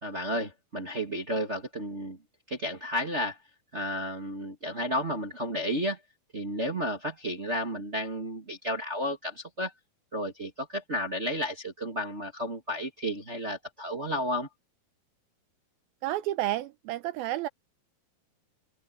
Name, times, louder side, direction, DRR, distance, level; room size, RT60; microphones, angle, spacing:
voice 1, 0.0-2.2 2.5-3.4 3.7-6.0 6.3-9.7 10.1-14.5, equal, 40° right, 0.9 m, -32 dB
voice 2, 16.0-17.5, right 15 dB, 80° right, 2.3 m, -30 dB
omnidirectional pair, 4.7 m